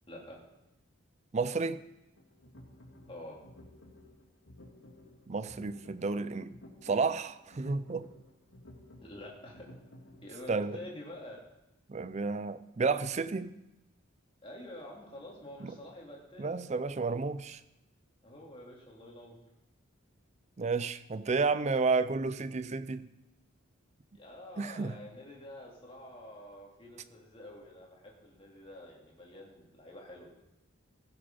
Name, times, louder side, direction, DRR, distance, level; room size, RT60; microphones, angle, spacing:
voice 1, 0.1-0.4 3.1-3.4 9.0-9.7 10.2-11.4 14.4-16.5 18.2-19.4 24.1-30.3, left 1 dB, 25° left, -2 dB, 2.4 m, -48 dB
voice 2, 1.3-1.8 5.3-6.5 6.8-8.1 10.5-10.8 11.9-13.6 15.6-15.7 16.4-17.6 20.6-23.1 24.6-25.0, right 4 dB, 35° right, 13 dB, 0.4 m, -31 dB
sound 1, 2.2-10.3, left 1 dB, 80° left, 2.7 m, -54 dB
15.5 x 6.8 x 5.3 m, 0.92 s
head